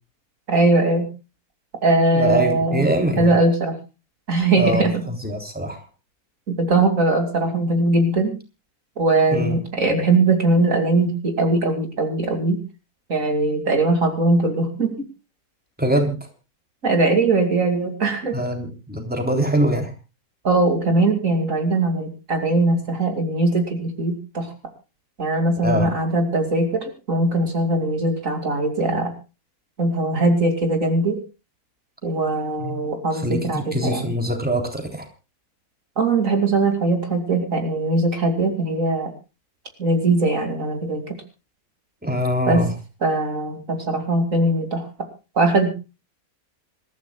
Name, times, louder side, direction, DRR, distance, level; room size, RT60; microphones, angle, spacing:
voice 1, 0.5-1.1 1.8-3.8 4.3-5.0 6.5-8.4 9.0-12.6 13.1-15.1 16.8-18.4 20.4-24.5 25.2-29.1 29.8-31.2 32.0-34.1 36.0-39.1 39.8-41.2 42.5-42.6 43.0-44.9 45.3-45.7, right 2 dB, 60° right, 5 dB, 3.1 m, -20 dB
voice 2, 2.1-3.3 4.6-5.8 9.3-9.6 15.8-16.3 18.3-19.9 25.6-25.9 32.6-32.8 33.1-35.0 42.0-42.7, right 1 dB, 5° right, 4 dB, 3.5 m, -23 dB
27.0 x 14.0 x 2.3 m, 0.31 s
omnidirectional pair, 1.6 m